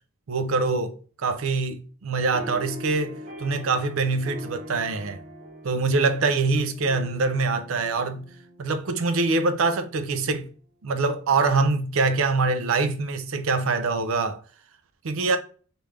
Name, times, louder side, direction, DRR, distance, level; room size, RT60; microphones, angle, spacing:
voice 1, 0.3-5.2 5.6-8.3 8.6-10.5 10.8-14.4 15.0-15.4, right 3 dB, 75° right, 0.5 m, -24 dB
sound 1, 2.3-9.2, equal, 35° right, 0.7 m, -42 dB
3.2 x 2.5 x 3.3 m
head